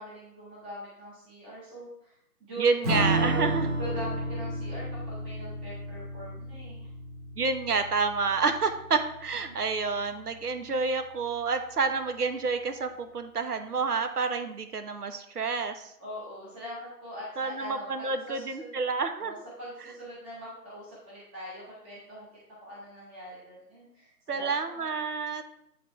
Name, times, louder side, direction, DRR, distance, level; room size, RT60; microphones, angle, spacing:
voice 1, 0.0-2.1 2.4-2.7 3.1-6.9 16.0-18.7 19.2-22.3 22.6-24.9, equal, 5° right, -8 dB, 0.8 m, -41 dB
voice 2, 2.6-3.7 7.4-15.9 17.4-19.3 24.3-25.4, right 4 dB, 75° right, 8 dB, 1.1 m, -29 dB
Strum, 2.8-9.7, right 1 dB, 25° right, 1.5 m, -32 dB
9.2 x 3.7 x 4.3 m, 0.76 s
figure-of-eight pair, 155°, 46 cm